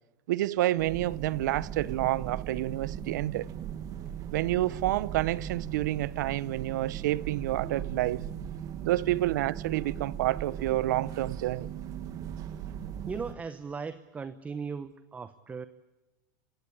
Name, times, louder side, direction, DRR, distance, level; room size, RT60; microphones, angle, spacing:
voice 1, 0.3-3.5 4.3-8.2 8.8-11.7, right 15 dB, 75° right, 0.8 m, -29 dB
sound 1, 0.8-13.3, right 9 dB, 35° right, 1.6 m, -38 dB
voice 2, 13.1-15.7, right 5 dB, 15° right, 0.9 m, -37 dB
30.0 x 17.5 x 8.7 m
supercardioid pair, 135°, 10 cm